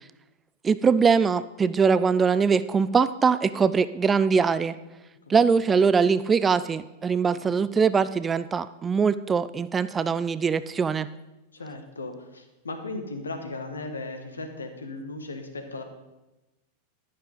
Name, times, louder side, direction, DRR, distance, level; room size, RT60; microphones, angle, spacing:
voice 1, 0.6-4.7 5.3-11.1, right 5 dB, 20° right, 15 dB, 0.3 m, -22 dB
voice 2, 4.6-4.9 5.3-5.4 7.3-7.5 11.5-15.8, left 2 dB, 75° left, 6 dB, 1.3 m, -37 dB
11.0 x 10.5 x 3.9 m, 1.0 s
figure-of-eight pair, 90°, 0 cm